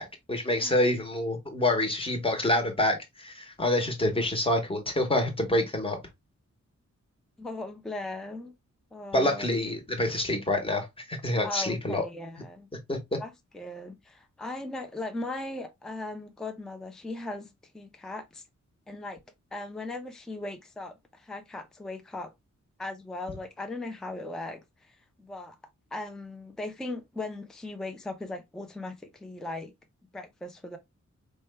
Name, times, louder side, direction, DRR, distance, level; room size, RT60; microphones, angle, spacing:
voice 1, 0.0-6.0 9.1-12.0 12.9-13.0, left 1 dB, 20° left, 0.9 m, -27 dB
voice 2, 7.4-8.5 8.9-9.6 11.4-12.7 13.2-18.4 18.9-19.2 19.5-22.3 22.8-25.6 25.9-29.7 30.1-30.8, left 2 dB, ahead, 0.4 m, -38 dB
4.4 x 2.2 x 3.1 m
wide cardioid pair, 170°, 29 cm